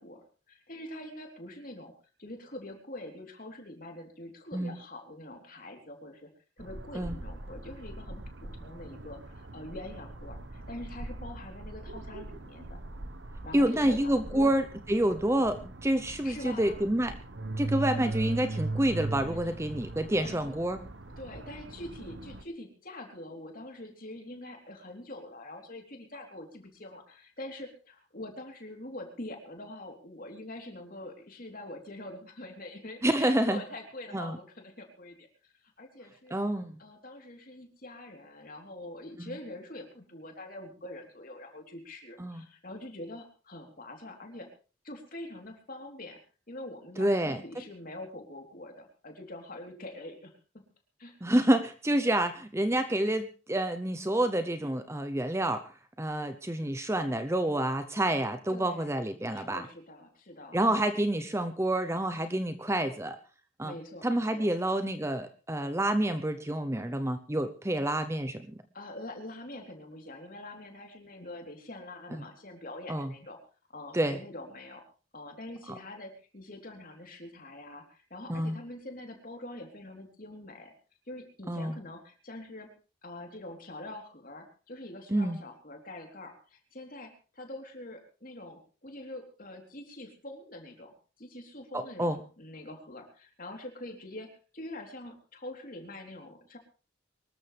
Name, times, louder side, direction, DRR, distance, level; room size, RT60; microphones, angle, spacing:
voice 1, 0.0-1.9 2.2-6.3 6.6-12.8 13.4-14.5 16.2-16.8 17.9-18.1 19.4-19.5 20.2-20.6 21.2-36.4 36.8-44.5 44.8-46.2 46.5-50.4 51.0-51.2 58.5-58.9 59.3-60.6 63.6-64.5 68.7-73.4 73.7-74.8 75.1-80.7 81.1-82.7 83.0-94.3 94.5-96.6, left 1 dB, 45° left, 3 dB, 3.6 m, -44 dB
sound 1, 6.6-22.4, right 2 dB, 65° right, 1.2 m, -40 dB
voice 2, 13.5-17.1 17.6-20.8 33.0-33.6 34.1-34.4 36.3-36.8 39.2-39.4 42.2-42.4 47.0-47.4 51.2-55.7 56.0-59.7 60.5-63.2 63.6-63.8 64.0-68.6 72.1-72.2 72.9-73.1 73.9-74.2 78.3-78.6 81.5-81.8 85.1-85.4 91.7-92.2, right 1 dB, 15° right, 9 dB, 0.7 m, -28 dB
24.0 x 13.5 x 3.4 m, 0.36 s
head